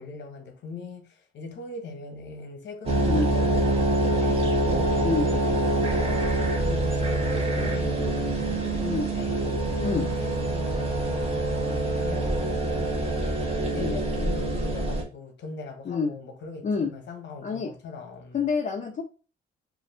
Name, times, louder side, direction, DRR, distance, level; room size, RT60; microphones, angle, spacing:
voice 1, 0.0-5.2 5.7-18.4, left 4 dB, 65° left, 0.9 m, -40 dB
sound 1, 2.8-15.0, right 2 dB, 30° right, 0.8 m, -25 dB
voice 2, 18.3-19.0, left 4 dB, 40° left, 0.6 m, -27 dB
2.5 x 2.3 x 3.3 m
cardioid pair, 90°, 20 cm